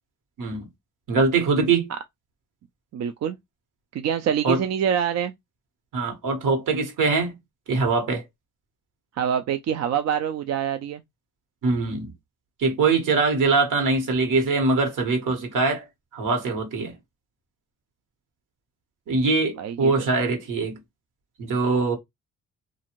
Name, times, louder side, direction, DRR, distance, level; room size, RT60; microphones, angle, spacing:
voice 1, 0.4-0.7 1.1-1.9 4.4-4.6 5.9-7.4 7.7-8.2 11.6-12.1 12.6-15.8 16.1-17.0 19.1-20.8 21.4-21.9, right 4 dB, 75° right, 1.3 m, -22 dB
voice 2, 2.9-3.4 3.9-5.3 9.2-11.0 19.6-19.9, right 8 dB, 55° right, 0.5 m, -25 dB
2.6 x 2.4 x 3.0 m
cardioid pair, 65°, 32 cm